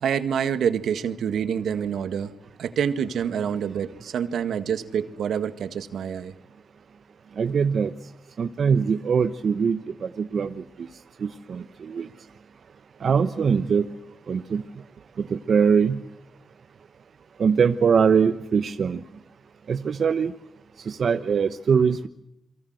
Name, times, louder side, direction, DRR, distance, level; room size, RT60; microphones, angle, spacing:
voice 1, 0.0-2.3 2.6-6.3, right 8 dB, 80° right, 11 dB, 1.8 m, -27 dB
voice 2, 7.4-7.9 8.4-10.6 11.2-12.1 13.0-13.9 14.3-14.6 15.2-16.0 17.4-19.0 19.7-20.3 20.9-22.1, right 6 dB, 60° right, 10 dB, 1.1 m, -22 dB
29.5 x 23.5 x 7.9 m, 0.80 s
cardioid pair, 75°, 0 cm